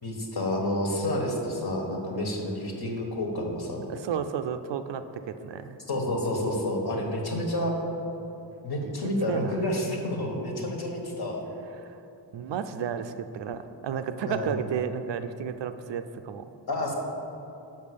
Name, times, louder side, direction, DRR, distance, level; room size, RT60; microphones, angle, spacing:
voice 1, 0.0-3.9 5.9-7.7 8.6-11.4 14.3-14.6 16.7-16.9, left 1 dB, 55° left, 0 dB, 1.5 m, -29 dB
voice 2, 3.9-5.8 9.3-9.6 11.8-12.0 12.3-16.4, right 8 dB, 65° right, 9 dB, 0.5 m, -32 dB
5.9 x 5.4 x 6.8 m, 2.9 s
cardioid pair, 70°, 46 cm